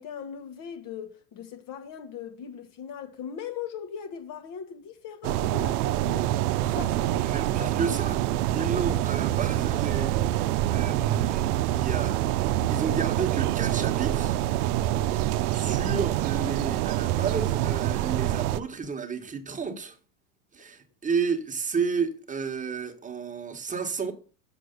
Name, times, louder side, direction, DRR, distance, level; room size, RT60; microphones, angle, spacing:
voice 1, 0.0-6.3 6.7-7.3 7.6-7.9, left 8 dB, 45° left, 1.4 m, -39 dB
sound 1, 5.2-18.6, right 14 dB, 75° right, 0.7 m, -26 dB
voice 2, 7.2-8.2 8.5-11.4 11.7-12.2 12.7-14.4 15.1-20.0 20.5-24.1, right 5 dB, 15° right, 1.4 m, -32 dB
7.0 x 4.8 x 6.7 m
supercardioid pair, 110°, 46 cm